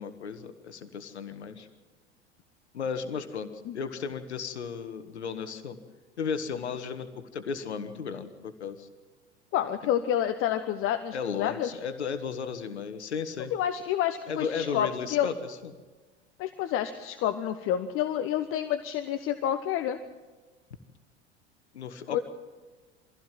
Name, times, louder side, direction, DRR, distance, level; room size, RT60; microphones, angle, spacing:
voice 1, 0.0-1.7 2.7-5.8 6.2-8.9 11.1-13.5 14.3-15.7 21.7-22.2, left 6 dB, 75° left, 10 dB, 1.6 m, -35 dB
voice 2, 9.5-11.8 13.5-15.3 16.4-20.0 22.1-22.2, left 10 dB, 40° left, 9 dB, 1.2 m, -29 dB
24.0 x 16.0 x 7.7 m, 1.3 s
figure-of-eight pair, 80°, 34 cm